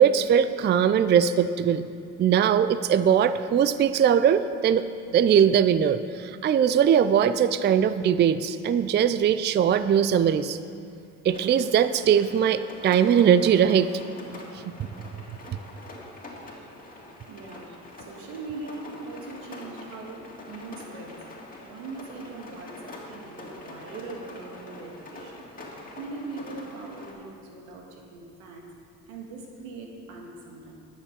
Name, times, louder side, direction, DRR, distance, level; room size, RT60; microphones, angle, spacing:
voice 1, 0.0-1.8 2.2-10.6 11.2-13.9 14.7-14.8 15.5-15.6, right 8 dB, 30° right, 13 dB, 0.4 m, -21 dB
Rain, 11.3-27.1, left 2 dB, 25° left, 2.5 m, -44 dB
voice 2, 17.3-21.2 21.6-25.5 26.0-28.7 29.1-30.8, right 3 dB, 85° right, 1 dB, 1.9 m, -41 dB
11.0 x 7.4 x 6.6 m, 2.5 s
supercardioid pair, 80°, 37 cm